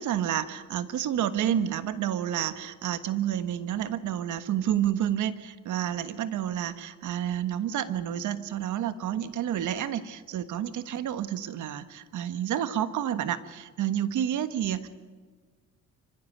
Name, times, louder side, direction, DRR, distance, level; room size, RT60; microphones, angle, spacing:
voice 1, 0.0-14.9, right 10 dB, 80° right, 11 dB, 1.4 m, -29 dB
26.0 x 15.0 x 9.1 m, 1.5 s
cardioid pair, 90°, 30 cm